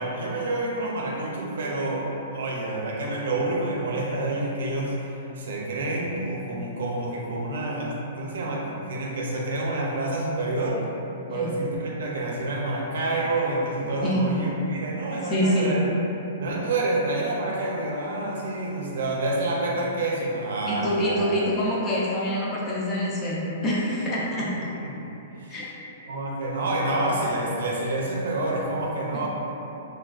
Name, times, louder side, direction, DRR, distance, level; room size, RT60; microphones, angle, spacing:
voice 1, 0.0-10.8 11.3-15.8 16.4-21.3 24.7-24.9 25.4-25.6 26.0-29.3, right 2 dB, 60° right, -3 dB, 0.5 m, -28 dB
voice 2, 15.3-15.7 20.7-24.7 25.5-25.6, equal, 15° left, -6 dB, 0.4 m, -26 dB
3.3 x 2.2 x 2.3 m, 2.9 s
hypercardioid pair, 180°, 0 cm